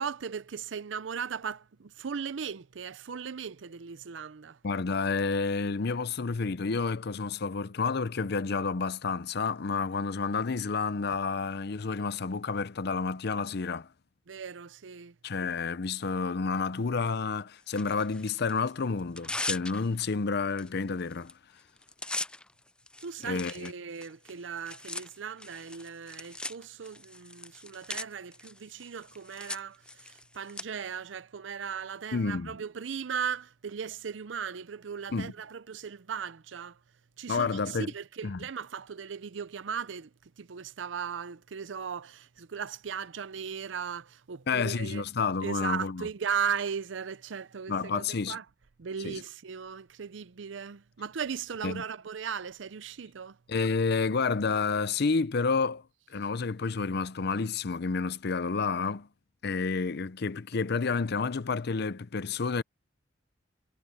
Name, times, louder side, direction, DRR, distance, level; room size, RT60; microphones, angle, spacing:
voice 1, 0.0-4.6 14.3-15.1 23.0-36.8 37.2-40.1 40.4-45.0 45.4-48.4 48.8-53.4, right 7 dB, 80° right, 0.6 m, -37 dB
voice 2, 4.6-13.9 15.2-21.3 23.2-23.7 32.1-32.5 35.1-35.3 37.3-37.9 38.2-38.4 44.5-46.1 47.7-48.4 49.0-49.2 51.6-51.8 53.5-55.8 56.1-59.1 59.4-62.6, left 4 dB, 60° left, 0.6 m, -30 dB
Tearing, 17.7-18.5 19.0-20.1 20.6-20.7 21.0-21.3 21.6-30.6, left 2 dB, 5° left, 0.3 m, -40 dB
head